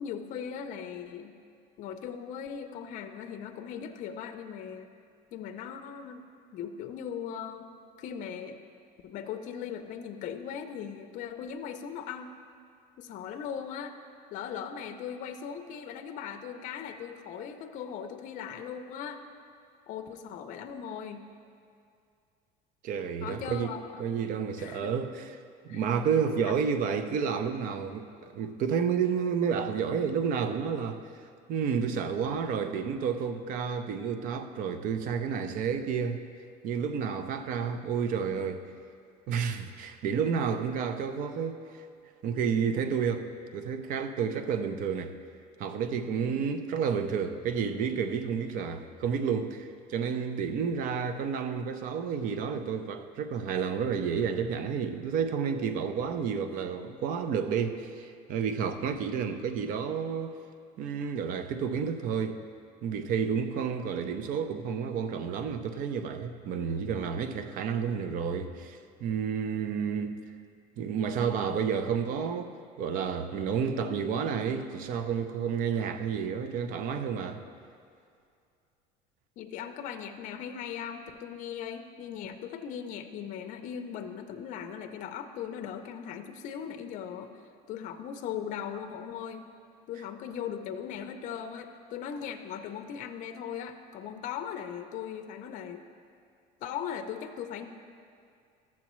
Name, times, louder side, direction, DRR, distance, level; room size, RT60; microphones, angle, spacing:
voice 1, 0.0-1.3 1.8-4.9 5.3-6.2 6.5-7.7 8.0-8.6 9.0-12.3 13.0-14.0 14.3-19.2 19.9-21.3 23.2-24.1 24.6-24.9 25.7-25.8 63.8-63.9 79.4-87.3 87.7-89.5 89.9-95.8 96.6-97.7, left 8 dB, 45° left, 0.5 m, -39 dB
voice 2, 22.8-23.7 24.0-25.3 25.6-31.0 31.5-36.2 36.6-38.6 39.3-41.6 42.2-43.3 43.5-45.1 45.6-60.4 60.8-62.4 62.8-70.2 70.8-72.5 72.8-77.4, right 6 dB, 50° right, 0.6 m, -30 dB
13.0 x 7.3 x 3.1 m
cardioid pair, 150°, 18 cm